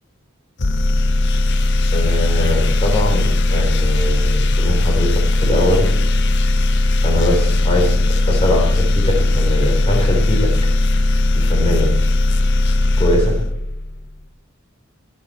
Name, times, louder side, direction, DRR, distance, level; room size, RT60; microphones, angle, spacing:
sound 1, 0.6-14.0, left 2 dB, 55° left, 0.9 m, -17 dB
voice 1, 1.9-5.9 7.0-8.0 8.3-10.5 11.4-11.9 13.0-13.3, left 1 dB, 30° left, 1 dB, 3.7 m, -21 dB
22.5 x 7.8 x 4.4 m, 0.83 s
head